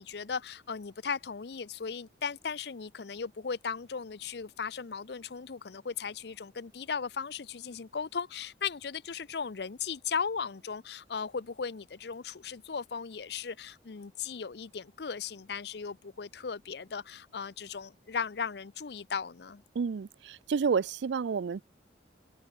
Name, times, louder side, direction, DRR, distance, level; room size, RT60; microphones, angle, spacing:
voice 1, 0.0-19.6, left 6 dB, 65° left, 0.6 m, -37 dB
voice 2, 19.7-21.6, right 5 dB, 75° right, 0.4 m, -30 dB
head